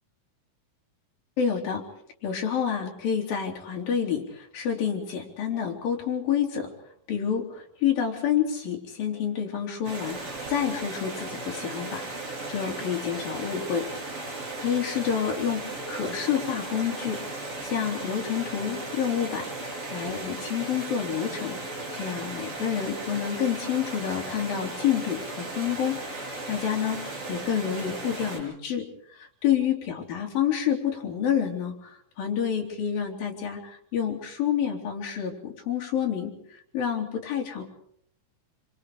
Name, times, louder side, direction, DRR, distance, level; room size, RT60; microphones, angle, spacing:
voice 1, 1.4-1.8 2.2-6.7 7.1-10.2 10.5-13.9 14.6-21.6 21.9-28.9 29.1-37.6, left 8 dB, 70° left, 0 dB, 5.0 m, -28 dB
Stream, 9.8-28.4, right 2 dB, 40° right, 7.2 m, -36 dB
26.5 x 26.0 x 5.1 m, 0.66 s
omnidirectional pair, 4.3 m